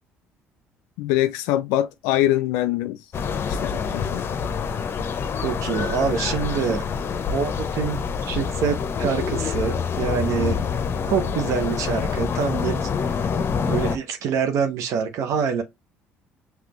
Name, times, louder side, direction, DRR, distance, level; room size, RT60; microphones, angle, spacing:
voice 1, 1.0-3.1 3.5-4.3, left 14 dB, 75° left, 0.3 m, -23 dB
sound 1, 3.1-14.0, left 6 dB, 45° left, 0.6 m, -26 dB
voice 2, 5.4-6.8 7.3-10.6 11.1-13.2 13.7-15.6, right 6 dB, 65° right, 0.8 m, -25 dB
5.1 x 3.2 x 3.0 m
hypercardioid pair, 60°, 6 cm